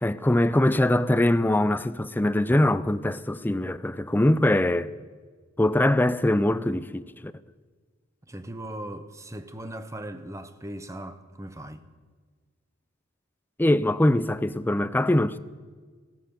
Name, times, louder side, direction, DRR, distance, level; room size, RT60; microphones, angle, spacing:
voice 1, 0.0-4.9 5.6-7.3 13.6-15.4, left 1 dB, 10° left, 0.4 m, -22 dB
voice 2, 8.3-11.8, right 1 dB, 15° right, 0.8 m, -38 dB
16.0 x 13.0 x 6.8 m
head